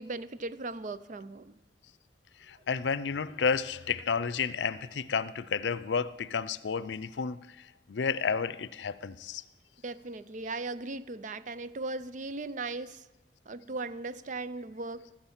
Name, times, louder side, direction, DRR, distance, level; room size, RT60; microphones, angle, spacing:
voice 1, 0.0-1.6 9.8-13.0 13.5-15.0, right 3 dB, 45° right, 0.5 m, -38 dB
voice 2, 2.4-9.4, left 6 dB, 85° left, 0.5 m, -31 dB
13.0 x 10.0 x 7.2 m
head